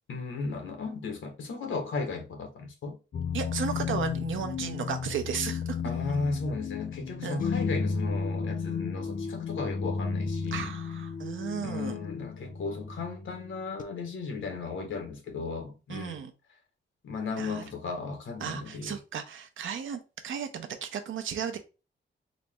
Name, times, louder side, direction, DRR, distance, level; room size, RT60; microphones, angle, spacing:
voice 1, 0.1-3.0 5.8-10.7 11.6-16.2 17.0-19.0, left 4 dB, 85° left, 1.0 m, -35 dB
sound 1, 3.1-13.8, left 5 dB, 45° left, 0.4 m, -33 dB
voice 2, 3.3-5.8 7.2-7.4 10.5-12.0 15.9-16.3 17.4-17.6 18.4-21.6, right 7 dB, 90° right, 0.7 m, -34 dB
4.1 x 2.1 x 3.4 m
wide cardioid pair, 175°, 20 cm